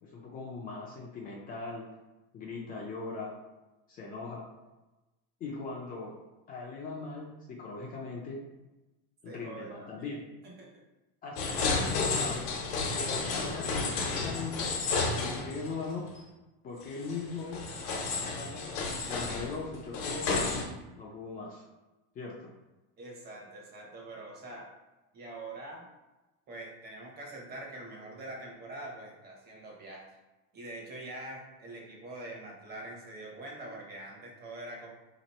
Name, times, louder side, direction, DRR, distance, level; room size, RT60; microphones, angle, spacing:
voice 1, 0.0-1.8 2.3-3.3 3.9-4.4 5.4-6.1 6.5-8.4 9.2-10.2 11.2-12.4 12.9-14.7 15.2-16.1 16.6-17.6 18.2-18.6 19.0-20.3 21.0-21.6 22.1-22.5, left 4 dB, 30° left, -3 dB, 0.5 m, -40 dB
voice 2, 9.3-10.1 10.6-10.7 11.5-11.9 23.0-24.7 25.1-25.9 26.5-30.1 30.5-34.9, right 2 dB, 30° right, -2 dB, 0.9 m, -44 dB
sound 1, 11.4-15.9 16.2-16.3 17.0-20.6, left 4 dB, 70° left, 0.9 m, -32 dB
2.9 x 2.5 x 4.1 m, 1.1 s
cardioid pair, 155°, 32 cm